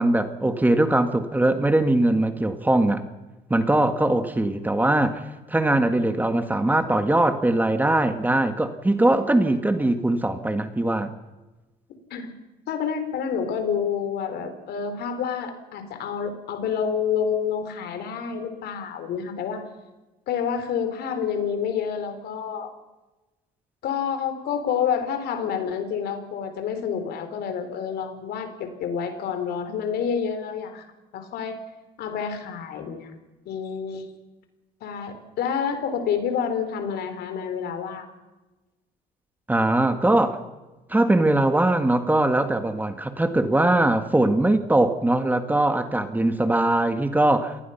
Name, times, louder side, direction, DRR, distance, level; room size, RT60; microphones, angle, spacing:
voice 1, 0.0-3.0 3.5-11.1 39.5-40.4 40.9-47.6, right 1 dB, 10° right, 8 dB, 1.8 m, -21 dB
voice 2, 12.7-19.6 20.3-22.7 23.8-30.9 31.1-31.6 32.0-33.1 33.5-34.1 34.8-38.1, left 7 dB, 75° left, 8 dB, 4.0 m, -28 dB
27.5 x 19.5 x 5.8 m, 1.1 s
cardioid pair, 110°, 17 cm